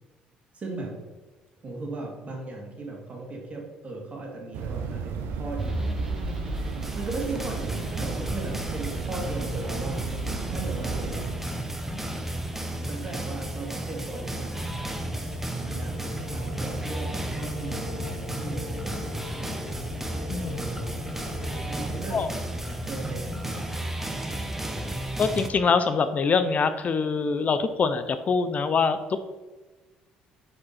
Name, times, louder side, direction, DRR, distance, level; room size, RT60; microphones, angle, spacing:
voice 1, 0.5-0.9 1.6-6.0 6.9-12.1 12.8-14.8 15.6-16.0 16.3-19.1 20.3-21.1 21.6-23.6, right 2 dB, 35° right, 0 dB, 2.1 m, -37 dB
sound 1, 4.5-11.3, right 5 dB, 75° right, 0.8 m, -34 dB
sound 2, 5.6-25.5, right 1 dB, 10° right, 0.9 m, -33 dB
sound 3, 12.3-22.2, left 1 dB, 10° left, 1.5 m, -40 dB
voice 2, 20.3-20.6 22.1-22.3 25.2-29.2, left 5 dB, 40° left, 11 dB, 0.5 m, -24 dB
6.1 x 4.9 x 4.2 m, 1.2 s
hypercardioid pair, 65°, 4 cm